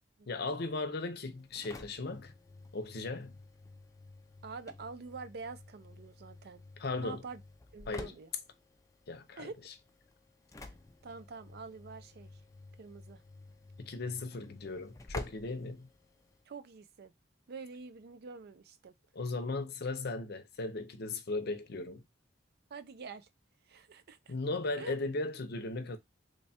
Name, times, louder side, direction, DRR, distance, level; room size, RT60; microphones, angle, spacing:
voice 1, 0.3-2.3 2.7-3.4 6.8-7.2 7.9-8.1 9.1-9.7 13.8-15.9 19.1-22.0 24.3-26.0, left 3 dB, 55° left, 0.6 m, -37 dB
Engine / Slam, 1.3-16.4, left 2 dB, 15° left, 0.4 m, -51 dB
voice 2, 4.4-6.6 7.0-7.4 7.7-8.3 9.4-9.6 10.6-10.7 11.0-12.4 12.8-13.2 16.5-17.1 17.5-18.9 22.7-23.3 23.7-24.3 24.8-24.9, right 4 dB, 55° right, 0.4 m, -46 dB
3.2 x 2.3 x 4.2 m
head